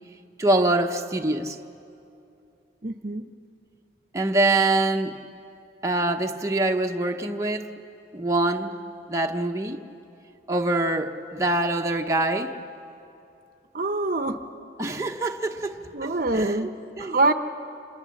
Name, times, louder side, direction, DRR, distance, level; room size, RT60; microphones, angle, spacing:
voice 1, 0.4-1.6 4.1-5.2 5.8-7.7 8.1-8.8 9.1-9.8 10.5-12.5 14.8-15.8 16.3-17.3, right 2 dB, 15° right, 2 dB, 1.0 m, -24 dB
voice 2, 2.8-3.3 13.7-14.4 15.9-16.7 17.0-17.3, right 2 dB, 50° right, 8 dB, 0.9 m, -24 dB
28.0 x 27.5 x 7.2 m, 2.7 s
head